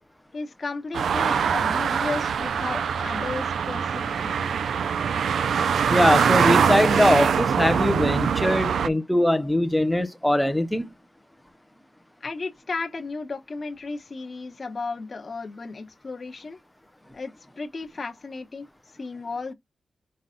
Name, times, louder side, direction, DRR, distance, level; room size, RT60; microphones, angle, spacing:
voice 1, 0.3-4.5 12.2-16.6 17.1-18.7 19.0-19.5, left 3 dB, 35° left, 0.9 m, -34 dB
sound 1, 0.9-8.9, right 7 dB, 80° right, 0.3 m, -23 dB
voice 2, 5.9-10.9, left 1 dB, 5° left, 0.5 m, -22 dB
5.4 x 2.2 x 3.7 m
wide cardioid pair, 160°, 0 cm